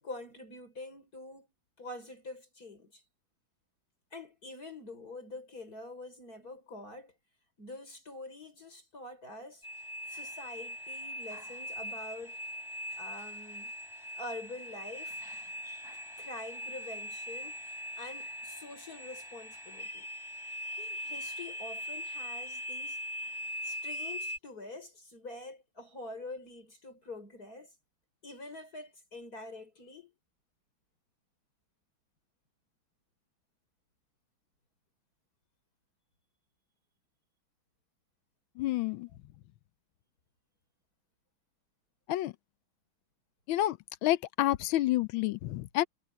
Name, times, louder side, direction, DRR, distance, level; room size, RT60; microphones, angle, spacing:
voice 1, 0.0-1.5 1.8-3.0 4.1-7.1 7.6-9.7 10.1-12.4 13.0-13.7 14.2-15.2 16.2-20.1 20.8-23.0 23.6-27.7 28.2-30.1, left 2 dB, 45° left, 5.8 m, -46 dB
sound 1, 9.6-24.4, equal, 10° left, 6.7 m, -41 dB
voice 2, 38.6-39.1 42.1-42.3 43.5-45.8, left 14 dB, 85° left, 1.5 m, -29 dB
omnidirectional pair, 2.2 m